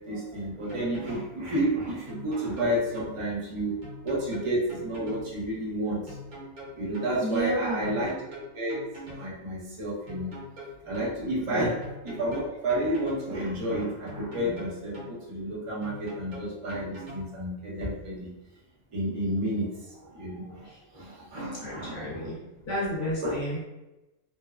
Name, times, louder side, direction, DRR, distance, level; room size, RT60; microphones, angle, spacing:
voice 1, 0.1-3.7 4.0-6.0 6.8-8.1 8.6-8.8 9.2-10.3 10.9-11.8 12.0-15.0 15.3-18.3 18.9-19.7 20.1-20.5 20.9-22.0 23.2-23.4, right 1 dB, 35° right, -5 dB, 0.5 m, -30 dB
sound 1, 0.7-1.3 2.1-3.1 3.8-5.3 6.1-7.1 7.8-9.3 10.1-11.1 11.8-13.3 14.1-15.1 15.8-17.3, equal, 85° right, 1.3 m, -42 dB
voice 2, 7.2-8.0 11.5-11.7 20.6-20.8 21.6-22.4 22.6-23.6, right 1 dB, 55° left, -6 dB, 0.9 m, -31 dB
2.9 x 2.1 x 2.3 m, 0.99 s
omnidirectional pair, 1.5 m